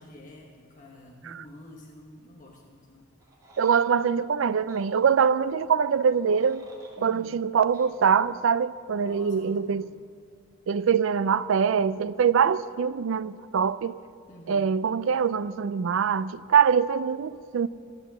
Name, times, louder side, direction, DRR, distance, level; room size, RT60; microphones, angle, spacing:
voice 1, 0.0-3.1 7.0-7.4 9.1-9.9 14.3-14.8, left 1 dB, 40° left, 1.1 m, -49 dB
sound 1, 3.2-3.9 4.7-4.9 6.0-7.0 7.7-7.9, right 2 dB, 15° right, 2.5 m, -52 dB
voice 2, 3.6-6.7 7.0-9.9 10.7-14.0 14.5-17.7, right 6 dB, 65° right, 0.4 m, -24 dB
13.5 x 8.3 x 7.3 m
head